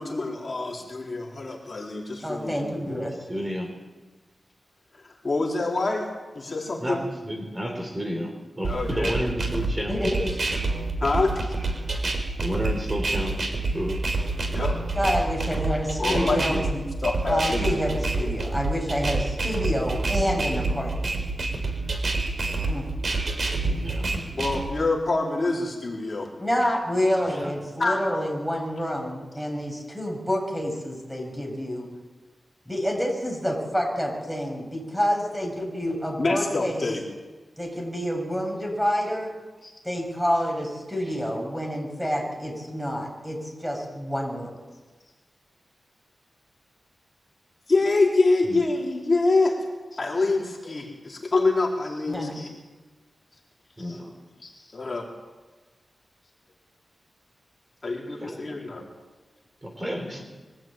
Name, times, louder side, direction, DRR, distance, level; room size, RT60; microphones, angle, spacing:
voice 1, 0.0-2.6 5.2-6.1 6.4-7.0 8.6-9.1 11.0-11.3 14.5-14.8 16.0-17.7 24.3-26.3 27.8-28.0 36.2-37.0 39.6-39.7 47.7-49.6 49.9-52.5 53.8-54.0 54.4-55.1 57.8-58.8, left 3 dB, 35° left, -1 dB, 4.2 m, -26 dB
voice 2, 2.2-3.2 9.9-10.3 15.0-16.7 17.3-21.1 22.7-22.9 26.4-31.9 32.7-36.8 37.6-39.3 39.8-44.6 52.1-52.3, equal, 5° right, 1 dB, 7.0 m, -28 dB
voice 3, 3.2-3.7 6.8-10.0 12.0-13.4 13.7-14.0 16.1-16.6 23.8-24.1 27.3-27.5 48.4-48.6 53.8-54.1 58.2-58.5 59.6-60.2, equal, 20° right, 2 dB, 4.1 m, -31 dB
sound 1, 8.6-24.7, right 3 dB, 50° right, 4.4 m, -27 dB
24.0 x 15.5 x 9.1 m, 1.3 s
wide cardioid pair, 110°, 0 cm